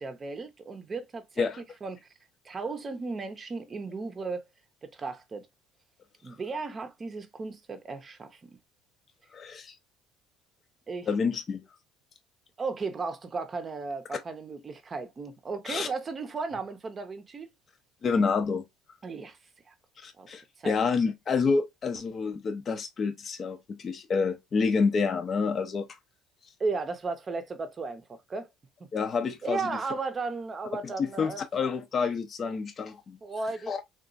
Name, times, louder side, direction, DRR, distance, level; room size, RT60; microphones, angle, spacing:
voice 1, 0.0-1.5 1.8-2.0 2.4-4.4 4.8-5.5 6.2-8.5 10.9-11.1 12.6-17.5 19.0-19.4 19.7-19.8 20.2-20.3 20.6-20.8 26.6-28.5 29.4-31.4 33.2-33.8, right 4 dB, 30° right, 0.6 m, -35 dB
voice 2, 9.3-9.7 11.1-11.6 15.7-15.9 18.0-18.6 20.0-25.9 28.9-29.6 31.0-33.2 33.7-33.8, left 5 dB, 40° left, 0.5 m, -28 dB
2.9 x 2.3 x 2.5 m
supercardioid pair, 80°, 0 cm